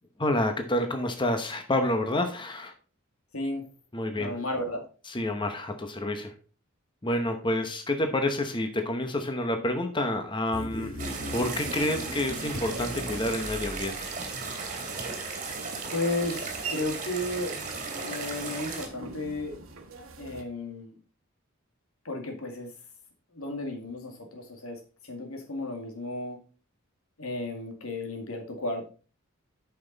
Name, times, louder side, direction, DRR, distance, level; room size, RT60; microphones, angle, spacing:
voice 1, 0.2-2.7 3.9-4.4 5.1-6.3 7.0-10.9 11.3-14.1, left 1 dB, 25° left, 6 dB, 1.0 m, -28 dB
voice 2, 4.2-4.8 15.9-17.5 18.0-19.6 20.2-20.9 22.0-22.7 23.3-26.4 27.2-28.9, left 2 dB, 85° left, 3 dB, 2.2 m, -33 dB
sound 1, 10.5-14.2, equal, 40° left, 2.2 m, -38 dB
sound 2, 10.7-20.4, right 3 dB, 70° right, 1.3 m, -45 dB
sound 3, 11.0-18.9, right 4 dB, 40° right, 2.3 m, -36 dB
8.6 x 6.0 x 4.0 m, 0.38 s
head